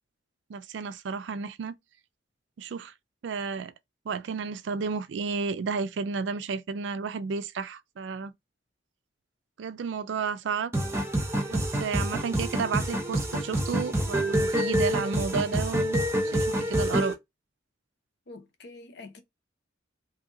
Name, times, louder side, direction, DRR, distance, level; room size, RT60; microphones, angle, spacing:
voice 1, 0.5-1.7 2.6-2.9 3.2-3.7 4.1-8.3 9.6-10.7 11.5-17.2, right 5 dB, 70° right, 0.4 m, -32 dB
sound 1, 10.7-17.1, right 1 dB, 15° right, 0.6 m, -27 dB
voice 2, 18.3-19.2, left 3 dB, 65° left, 0.7 m, -46 dB
2.7 x 2.7 x 2.6 m
head